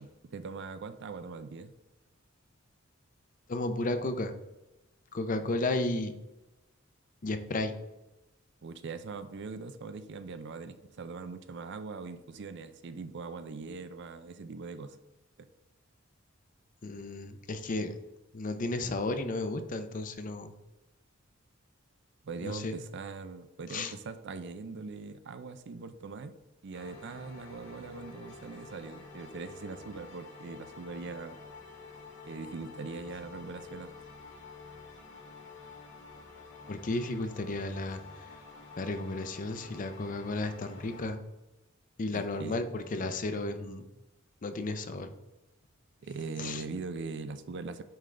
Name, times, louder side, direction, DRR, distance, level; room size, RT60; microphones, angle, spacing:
voice 1, 0.0-1.7 8.6-15.0 15.4-15.5 22.2-26.3 26.6-31.4 32.2-33.9 42.1-42.7 46.0-47.8, right 4 dB, 60° right, 11 dB, 0.4 m, -41 dB
voice 2, 3.5-4.3 5.1-6.2 7.2-7.7 16.8-18.0 18.3-20.5 22.4-22.7 23.7-23.9 36.7-38.3 38.8-41.2 42.0-43.9 44.4-45.1 46.4-46.6, left 2 dB, 40° left, 8 dB, 0.5 m, -33 dB
sound 1, 26.7-41.0, left 4 dB, 60° left, 1.6 m, -49 dB
8.7 x 3.7 x 3.3 m, 1.0 s
head